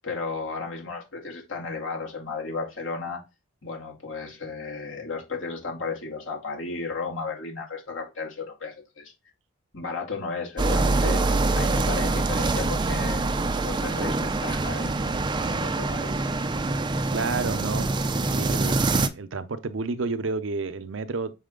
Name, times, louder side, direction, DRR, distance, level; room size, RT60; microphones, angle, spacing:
voice 1, 0.0-3.2 3.6-9.1 9.7-11.3 11.6-15.0 15.5-16.3, left 4 dB, 70° left, 2.1 m, -34 dB
Light Traffic, 10.6-19.1, right 3 dB, 25° right, 0.4 m, -25 dB
voice 2, 17.1-17.9 18.2-21.4, right 4 dB, 70° right, 0.6 m, -30 dB
6.1 x 4.2 x 3.7 m
head